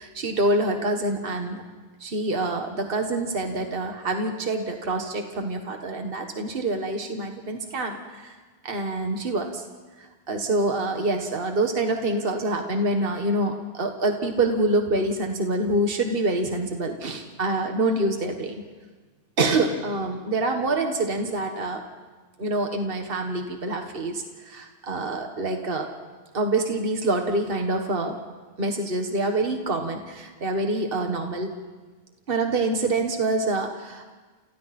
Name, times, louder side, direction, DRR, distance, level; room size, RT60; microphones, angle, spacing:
voice 1, 0.0-1.6 2.0-8.3 8.6-9.6 10.0-18.6 19.4-21.8 22.4-25.9 26.3-28.2 28.6-31.5 32.3-34.1, right 2 dB, 60° right, 4 dB, 1.8 m, -26 dB
30.0 x 28.5 x 4.4 m, 1.4 s
omnidirectional pair, 1.1 m